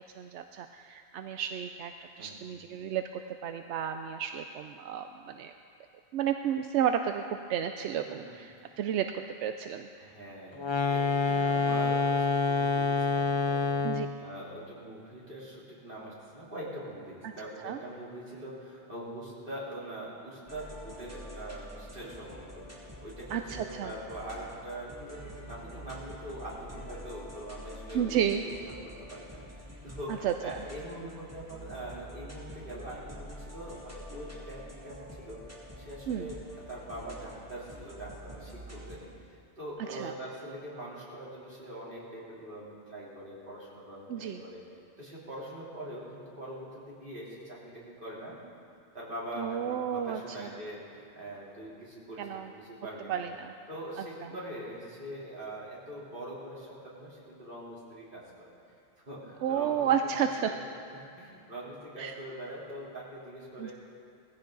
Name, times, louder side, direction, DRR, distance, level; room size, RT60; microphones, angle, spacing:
voice 1, 0.2-5.5 6.1-7.2 7.5-8.5 8.8-9.9 13.8-14.1 17.2-17.3 17.6-17.8 23.3-23.9 27.9-28.4 30.1-30.6 36.1-36.3 39.9-40.1 44.1-44.4 49.4-50.2 52.2-52.5 53.1-53.5 59.4-60.5 62.0-62.1 63.6-63.7, right 9 dB, 85° right, 7 dB, 0.9 m, -32 dB
voice 2, 10.0-36.4 36.7-44.6 45.0-48.4 48.9-53.3 53.7-58.5 59.0-59.9 60.2-60.6 61.2-63.7, right 1 dB, 50° right, -7 dB, 3.6 m, -43 dB
sound 1, 10.6-14.2, left 4 dB, 30° left, 0.6 m, -27 dB
sound 2, 20.5-39.0, equal, 15° right, 2.3 m, -47 dB
19.0 x 15.0 x 3.9 m, 2.5 s
omnidirectional pair, 1.1 m